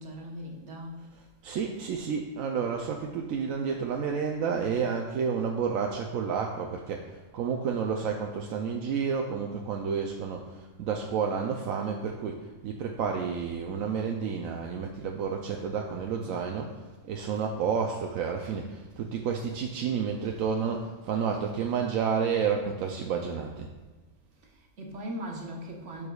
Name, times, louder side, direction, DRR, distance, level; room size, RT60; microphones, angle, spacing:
voice 1, 0.0-1.1 24.4-26.1, equal, 60° right, 1.5 m, -39 dB
voice 2, 1.1-23.7, right 6 dB, 80° right, 1.0 m, -30 dB
12.0 x 4.8 x 2.3 m
omnidirectional pair, 1.4 m